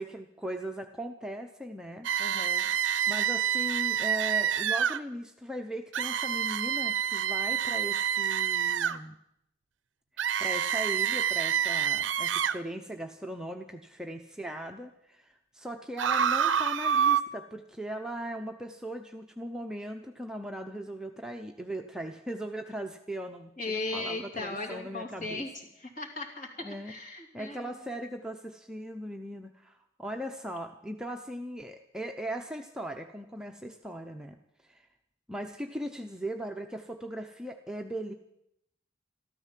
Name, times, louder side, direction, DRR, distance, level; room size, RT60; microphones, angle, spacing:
voice 1, 0.0-2.1 3.1-9.2 10.4-25.5 26.6-27.0 27.3-34.4 34.6-34.9 35.3-38.1, right 1 dB, 5° right, 3 dB, 0.7 m, -39 dB
sound 1, 2.0-5.0 5.9-9.0 10.2-12.6 16.0-17.2, right 8 dB, 90° right, 0.6 m, -27 dB
voice 2, 2.2-2.7 23.6-27.8, left 2 dB, 45° left, 1 dB, 2.9 m, -37 dB
13.5 x 13.0 x 7.5 m, 0.78 s
head